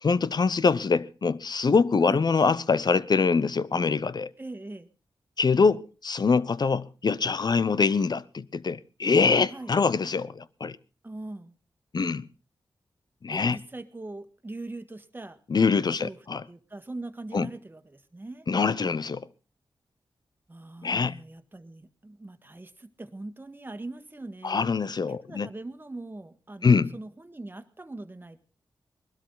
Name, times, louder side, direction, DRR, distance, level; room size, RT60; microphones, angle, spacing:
voice 1, 0.0-4.3 5.4-10.8 11.9-12.3 13.2-13.6 15.5-16.4 17.3-17.5 18.5-19.3 20.8-21.2 24.4-25.5 26.6-26.9, left 4 dB, 55° left, 0.8 m, -24 dB
voice 2, 4.4-4.9 9.5-9.7 11.0-11.5 13.3-16.2 16.4-18.5 20.5-24.6 25.1-28.4, right 2 dB, 25° right, 1.7 m, -41 dB
20.5 x 12.5 x 4.0 m
cardioid pair, 60°, 9 cm